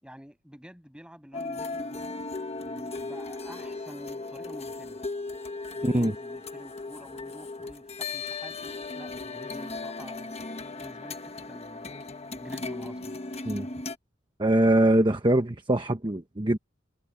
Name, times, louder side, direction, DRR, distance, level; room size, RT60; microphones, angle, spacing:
voice 1, 0.0-5.0 5.7-10.3 10.7-13.2, equal, 5° right, 7.2 m, -48 dB
sound 1, 1.3-14.0, left 3 dB, 30° left, 1.3 m, -37 dB
voice 2, 14.4-16.6, right 1 dB, 25° right, 1.1 m, -23 dB
head